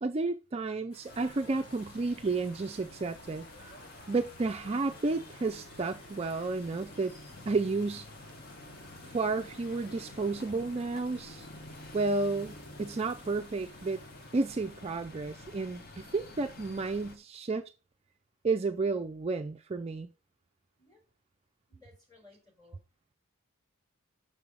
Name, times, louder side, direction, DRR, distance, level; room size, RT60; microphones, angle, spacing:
voice 1, 0.0-3.5 4.1-7.1 7.5-8.1 9.1-11.5 11.9-14.0 14.3-17.6 18.4-20.1, right 3 dB, 30° right, 0.4 m, -32 dB
sound 1, 0.9-16.1, equal, 75° left, 4.5 m, -57 dB
sound 2, 1.1-17.2, left 2 dB, 45° left, 0.9 m, -49 dB
voice 2, 21.7-22.8, left 3 dB, 15° left, 3.9 m, -60 dB
6.7 x 5.4 x 4.8 m
head